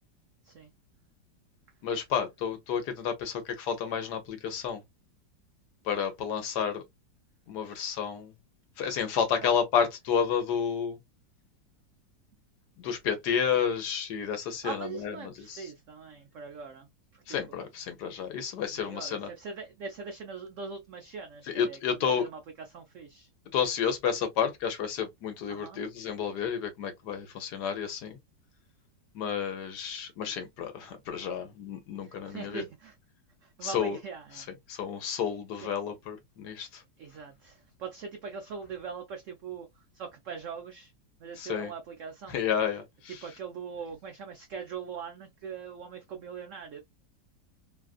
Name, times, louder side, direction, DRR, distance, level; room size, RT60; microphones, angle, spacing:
voice 1, 1.8-4.8 5.8-6.8 7.5-8.3 8.8-11.0 12.8-15.7 17.3-19.3 21.5-22.3 23.5-28.2 29.1-32.6 33.6-34.0 34.4-36.8 41.4-41.7 42.3-43.2, left 7 dB, 65° left, 1.3 m, -31 dB
voice 2, 14.6-17.6 18.7-23.3 25.5-25.8 32.0-33.0 33.4-34.8 35.6-35.7 37.0-40.9 41.2-42.4 43.1-46.8, right 5 dB, 80° right, 0.6 m, -42 dB
3.2 x 2.4 x 2.4 m
omnidirectional pair, 2.0 m